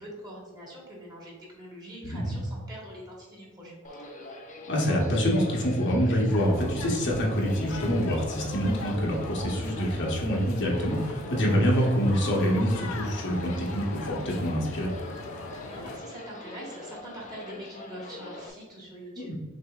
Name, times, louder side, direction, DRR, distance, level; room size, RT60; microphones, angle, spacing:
voice 1, 0.0-3.9 15.6-19.3, equal, 20° right, -5 dB, 1.4 m, -44 dB
voice 2, 2.0-2.4 4.7-14.9 19.2-19.3, equal, 60° left, -2 dB, 0.9 m, -26 dB
sound 1, 3.8-18.5, left 2 dB, 40° left, 0.5 m, -43 dB
sound 2, 6.3-16.0, left 3 dB, 85° left, 0.5 m, -39 dB
6.2 x 2.7 x 2.3 m, 1.4 s
head